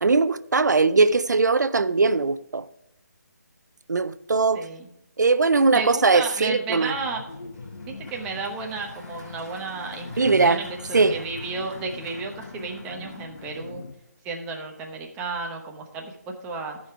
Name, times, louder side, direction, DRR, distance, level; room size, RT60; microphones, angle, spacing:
voice 1, 0.0-2.7 3.9-4.7 5.2-6.9 10.2-10.6 10.9-11.2, right 4 dB, 85° right, 0.4 m, -20 dB
voice 2, 4.5-4.9 5.7-7.2 7.9-13.8 14.2-16.8, right 4 dB, 10° right, 0.9 m, -33 dB
sound 1, 6.9-13.9, left 3 dB, 75° left, 0.9 m, -42 dB
Applause, 7.0-14.1, left 2 dB, 15° left, 3.1 m, -50 dB
13.5 x 5.1 x 4.7 m
figure-of-eight pair, 155°, 9 cm